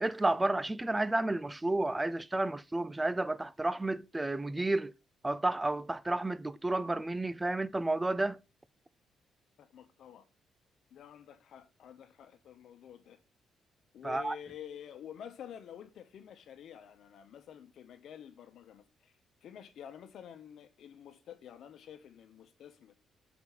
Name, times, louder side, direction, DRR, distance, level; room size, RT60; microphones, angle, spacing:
voice 1, 0.0-4.9 5.2-8.4 14.0-14.4, right 2 dB, 15° right, 0.4 m, -31 dB
voice 2, 9.6-10.3 10.9-13.2 13.9-19.1 19.4-22.9, left 9 dB, 70° left, 1.0 m, -49 dB
6.0 x 3.9 x 4.4 m
cardioid pair, 90°, 0 cm